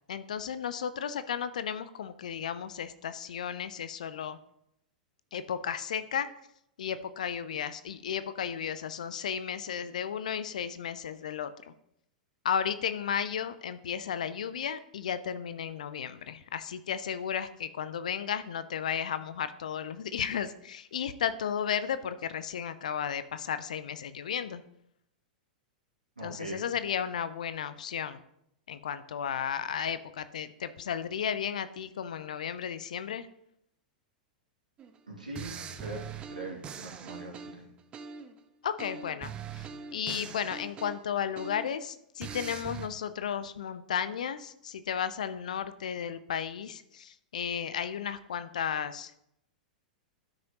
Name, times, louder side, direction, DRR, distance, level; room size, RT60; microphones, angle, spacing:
voice 1, 0.1-4.4 5.3-6.3 6.8-11.5 12.4-24.6 26.2-28.2 28.7-33.3 38.6-49.1, left 8 dB, 60° left, 13 dB, 0.5 m, -34 dB
voice 2, 26.2-26.6 35.1-37.7, right 2 dB, 75° right, -1 dB, 2.4 m, -42 dB
sound 1, 34.8-35.0 35.4-38.4 38.8-41.8 42.2-42.9, right 6 dB, 25° right, 0.7 m, -42 dB
12.5 x 6.3 x 3.0 m, 0.76 s
figure-of-eight pair, 95°, 4 cm